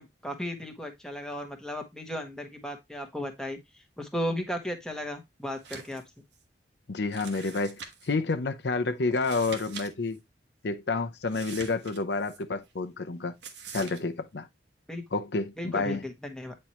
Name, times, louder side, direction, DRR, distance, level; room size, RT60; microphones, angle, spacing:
voice 1, 0.0-6.0 14.9-15.0 15.6-16.5, equal, 5° left, 1.0 m, -35 dB
sound 1, 5.5-6.0 6.3-6.4 7.1-8.1 9.1-9.9 10.1-10.2 11.3-12.4 13.4-14.0, right 6 dB, 70° right, 1.3 m, -43 dB
voice 2, 6.9-10.2 10.6-13.3 13.7-14.5 15.1-16.0, left 3 dB, 65° left, 0.6 m, -29 dB
8.9 x 4.4 x 3.0 m
head